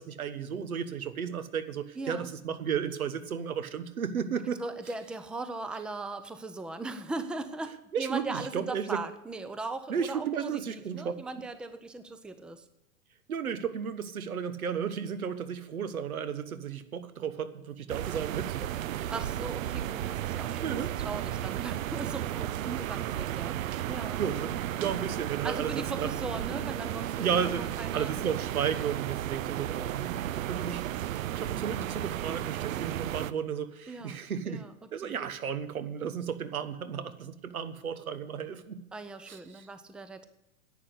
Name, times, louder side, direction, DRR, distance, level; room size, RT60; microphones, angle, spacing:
voice 1, 0.0-4.6 7.9-9.0 9.9-11.1 13.3-19.1 20.6-20.9 22.6-22.8 24.2-26.5 27.2-34.6 34.9-38.8 39.3-39.7, right 7 dB, 85° right, 12 dB, 1.3 m, -34 dB
voice 2, 2.0-2.3 4.6-12.7 19.1-24.2 25.4-27.5 27.8-28.1 33.9-34.2 34.5-34.7 35.0-35.3 38.9-40.3, right 3 dB, ahead, 11 dB, 0.5 m, -39 dB
sound 1, 17.9-33.3, right 12 dB, 70° right, 0.6 m, -34 dB
11.0 x 8.4 x 7.9 m, 0.91 s
hypercardioid pair, 115°, 42 cm